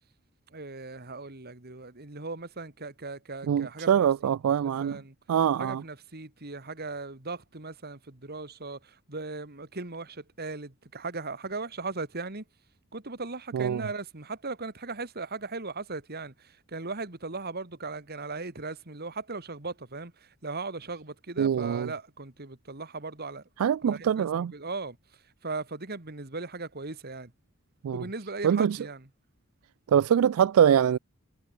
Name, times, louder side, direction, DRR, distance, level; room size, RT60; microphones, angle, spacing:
voice 1, 0.5-4.3 4.6-5.1 5.6-12.4 12.9-23.4 23.8-25.0 25.4-27.3 27.9-29.1, right 3 dB, 45° right, 2.2 m, -38 dB
voice 2, 3.5-5.0 5.3-5.8 13.5-13.8 21.4-21.9 23.6-24.5 27.8-28.0 28.4-28.8 29.9-31.0, right 8 dB, 70° right, 0.3 m, -23 dB
head